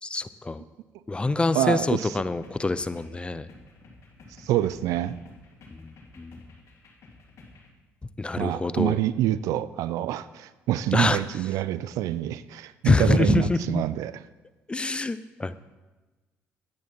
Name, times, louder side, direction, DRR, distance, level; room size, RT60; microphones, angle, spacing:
voice 1, 0.0-0.6 1.1-3.5 5.7-6.5 8.2-9.0 10.9-11.2 12.8-13.8 14.7-15.6, left 3 dB, 20° left, 14 dB, 0.5 m, -25 dB
voice 2, 1.5-2.1 4.4-5.2 8.4-14.1, right 13 dB, 75° right, 16 dB, 0.4 m, -26 dB
sound 1, 2.1-7.7, left 2 dB, 60° left, 2.1 m, -52 dB
9.6 x 8.4 x 4.5 m, 1.2 s
supercardioid pair, 70°, 6 cm